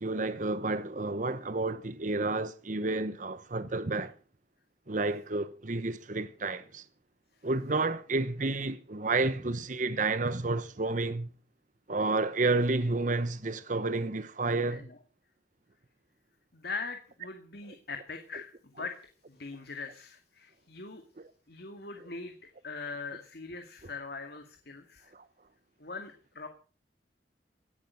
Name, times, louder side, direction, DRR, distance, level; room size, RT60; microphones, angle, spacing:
voice 1, 0.0-4.1 4.9-6.8 7.4-11.3 11.9-14.9 21.2-21.3 25.1-25.2, right 3 dB, 45° right, 1.0 m, -30 dB
voice 2, 16.5-19.0 19.3-21.0 21.5-22.4 22.6-25.1 25.8-26.5, left 4 dB, 60° left, 2.1 m, -41 dB
18.0 x 11.5 x 6.3 m
head